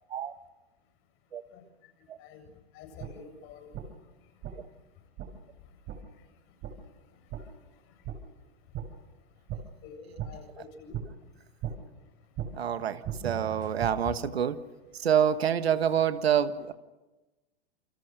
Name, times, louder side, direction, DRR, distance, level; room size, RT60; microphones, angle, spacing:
voice 1, 2.7-3.8 9.8-11.0 14.1-14.2 15.8-16.0, left 8 dB, 40° left, 6 dB, 7.9 m, -46 dB
sound 1, 3.0-3.1 3.7-3.8 4.4-4.5 5.2-5.3 5.9-6.0 6.6-6.7 7.3-7.4 8.0-8.2 8.7-8.9 9.5-9.6 10.2-10.3 10.9-11.0 11.6-11.7 12.4-12.5 13.0-13.9, right 10 dB, 40° right, 5.5 m, -36 dB
voice 2, 12.6-14.6 15.0-16.7, right 9 dB, 85° right, 12 dB, 1.5 m, -27 dB
29.0 x 24.5 x 6.6 m, 1.1 s
hypercardioid pair, 115°, 31 cm